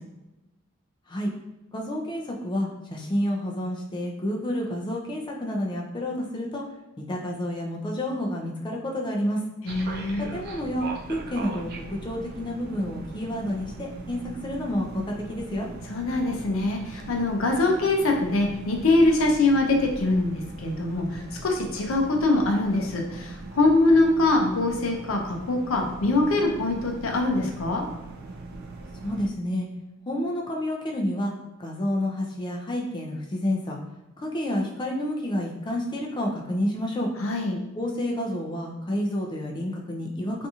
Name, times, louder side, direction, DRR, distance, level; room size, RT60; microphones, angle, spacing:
voice 1, 1.7-6.6 7.0-9.4 10.3-15.0 15.3-15.7 29.0-29.7 30.1-31.3 31.6-33.8 34.2-37.1 37.7-40.5, left 1 dB, 25° left, -1 dB, 0.4 m, -29 dB
voice 2, 9.6-10.3 15.9-27.8 37.2-37.6, left 2 dB, 80° left, 2 dB, 0.5 m, -23 dB
sound 1, 9.7-29.3, right 3 dB, 50° right, 0.3 m, -40 dB
2.8 x 2.5 x 2.3 m, 0.99 s
head